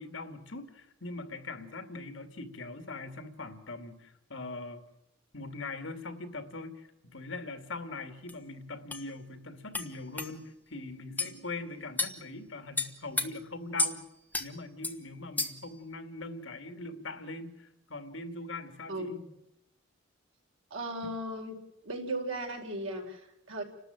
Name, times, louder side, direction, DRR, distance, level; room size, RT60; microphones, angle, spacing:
voice 1, 0.0-4.8 5.3-14.0 14.4-19.1 21.0-21.1, left 2 dB, 75° left, 8 dB, 2.3 m, -41 dB
sound 1, 8.3-8.4 8.9-9.0 9.7-9.9 10.2-10.3 11.2-11.3 12.0-12.2 12.8-13.3 13.8-14.0 14.3-14.5 14.8-15.0 15.4-15.7, left 2 dB, 10° left, 1.2 m, -31 dB
voice 2, 18.9-19.3 20.7-21.6 21.8-23.6, right 1 dB, 90° right, 1 dB, 4.6 m, -36 dB
30.0 x 13.0 x 9.2 m, 0.85 s
head